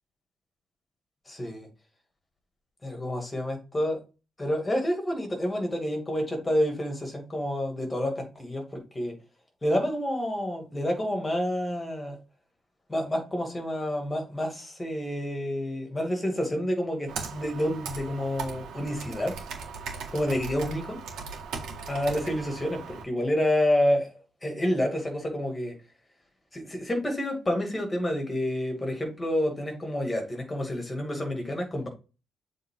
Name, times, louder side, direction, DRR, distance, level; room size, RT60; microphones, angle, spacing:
voice 1, 1.3-1.7 2.8-4.0 4.4-9.1 9.6-12.2 12.9-19.3 20.1-21.0 21.9-24.1 24.4-25.7 26.5-31.9, equal, 10° left, 3 dB, 2.3 m, -29 dB
Computer keyboard, 17.1-23.0, right 5 dB, 80° right, 1.9 m, -38 dB
7.6 x 3.8 x 3.8 m, 0.31 s
cardioid pair, 150°, 0 cm